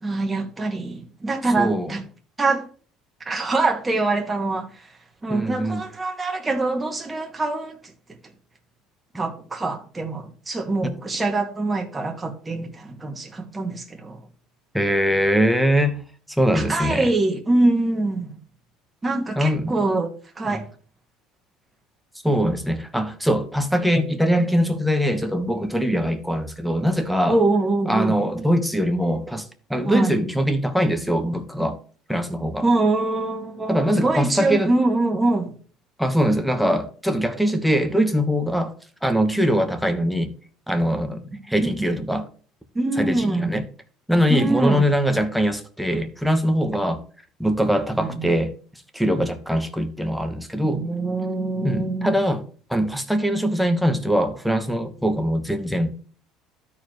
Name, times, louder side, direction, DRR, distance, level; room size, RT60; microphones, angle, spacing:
voice 1, 0.0-2.0 2.4-2.6 3.3-4.9 5.2-7.8 9.1-14.2 16.5-18.4 19.0-20.1 20.4-20.6 27.3-28.2 29.9-30.2 32.6-35.5 41.6-41.9 42.7-43.6 44.3-44.9 48.0-48.3 50.6-52.2, right 2 dB, 20° right, 2.0 m, -24 dB
voice 2, 1.6-1.9 5.3-5.8 14.7-16.0 16.4-17.1 19.3-19.8 20.5-20.6 22.2-27.4 27.9-31.8 32.1-32.6 33.7-34.7 36.0-38.7 39.0-40.3 40.7-42.3 43.0-43.6 44.1-47.0 47.4-48.5 48.9-50.9 51.6-52.4 52.7-55.9, equal, ahead, 1.4 m, -22 dB
13.0 x 4.6 x 3.2 m
supercardioid pair, 85°, 0 cm